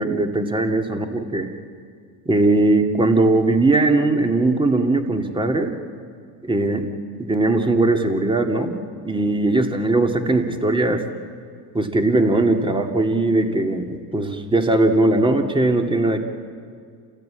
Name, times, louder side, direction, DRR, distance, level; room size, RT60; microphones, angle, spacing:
voice 1, 0.0-1.5 2.3-5.8 6.4-6.9 7.2-8.8 9.0-11.0 11.7-16.2, right 2 dB, 10° right, 5 dB, 2.1 m, -19 dB
28.0 x 15.5 x 8.7 m, 2.2 s
supercardioid pair, 90°, 46 cm